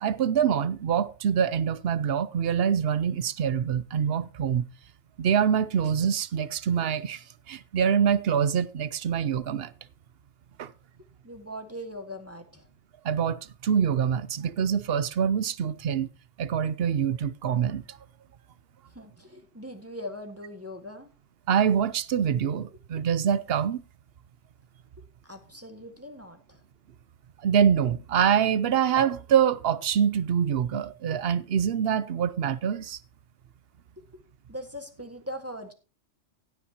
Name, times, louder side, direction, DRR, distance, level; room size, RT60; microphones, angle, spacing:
voice 1, 0.0-4.6 5.2-9.7 10.6-10.7 13.0-16.1 16.4-18.0 21.5-23.8 27.4-33.0, right 8 dB, 55° right, 0.8 m, -25 dB
voice 2, 11.2-12.6 18.9-21.1 25.2-26.6 34.0-34.1 34.5-35.7, equal, 10° right, 1.7 m, -40 dB
16.0 x 8.6 x 2.9 m
omnidirectional pair, 1.3 m